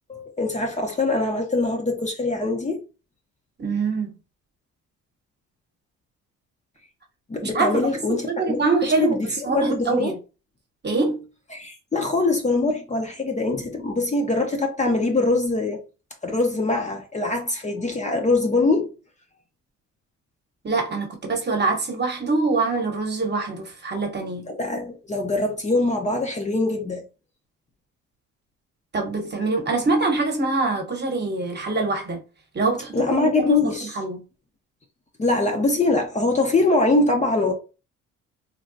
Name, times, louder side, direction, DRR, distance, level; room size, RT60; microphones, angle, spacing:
voice 1, 0.1-2.8 7.3-10.1 11.5-15.8 16.2-18.9 24.5-27.0 32.9-34.0 35.2-37.5, left 2 dB, 25° left, 0.7 m, -23 dB
voice 2, 3.6-4.1 7.4-7.8 8.1-9.2 9.4-10.1 10.8-11.2 20.6-24.4 28.9-32.2 32.5-34.2, right 3 dB, 35° right, 1.0 m, -24 dB
3.2 x 2.2 x 2.6 m
cardioid pair, 90°, 30 cm